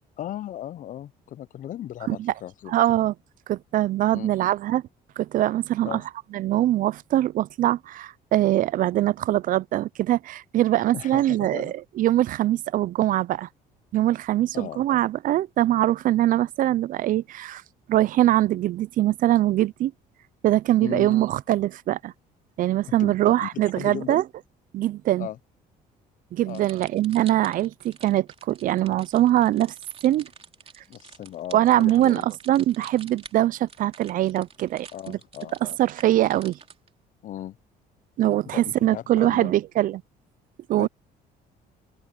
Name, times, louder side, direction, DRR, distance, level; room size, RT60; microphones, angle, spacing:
voice 1, 0.2-2.7 4.1-4.3 5.8-6.0 10.9-11.7 14.5-14.8 20.8-21.2 23.0-24.2 25.2-25.4 26.4-26.6 30.9-32.3 34.9-35.8 37.2-37.6 38.5-39.5 40.8-40.9, left 12 dB, 50° left, 0.5 m, -37 dB
voice 2, 2.7-3.1 3.5-4.8 5.2-6.0 6.3-13.5 13.9-17.6 17.9-19.9 20.4-22.1 22.6-24.2 24.7-25.3 26.3-29.7 30.0-30.3 31.5-35.2 35.6-36.6 38.2-40.0 40.7-40.9, right 14 dB, 55° right, 0.4 m, -22 dB
sound 1, 26.5-36.9, right 6 dB, 35° right, 3.2 m, -48 dB
open air
cardioid pair, 110°, 17 cm